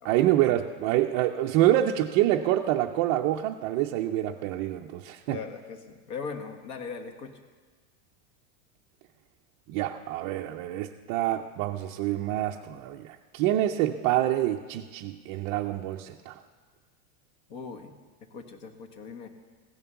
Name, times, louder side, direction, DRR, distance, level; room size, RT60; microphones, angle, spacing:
voice 1, 0.0-5.4 9.7-16.3, right 13 dB, 35° right, 0 dB, 0.4 m, -26 dB
voice 2, 5.3-7.3 17.5-17.9 18.2-19.3, left 5 dB, 55° left, 6 dB, 1.7 m, -39 dB
16.0 x 11.0 x 6.9 m, 1.4 s
supercardioid pair, 165°, 41 cm